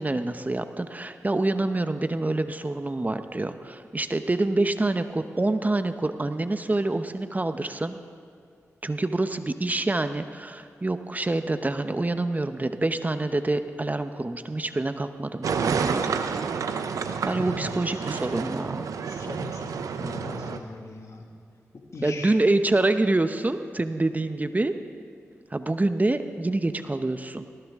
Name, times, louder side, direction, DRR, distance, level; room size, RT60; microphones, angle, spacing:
voice 1, 0.0-8.0 8.8-16.0 17.3-18.9 22.0-24.7 25.5-27.5, right 2 dB, 30° right, 9 dB, 0.8 m, -26 dB
sound 1, 15.4-20.6, right 6 dB, 85° right, 0.6 m, -29 dB
voice 2, 17.5-18.4 19.0-21.3 21.7-22.4, left 3 dB, 65° left, 2 dB, 2.0 m, -41 dB
19.5 x 15.5 x 3.7 m, 2.3 s
cardioid pair, 45°, 6 cm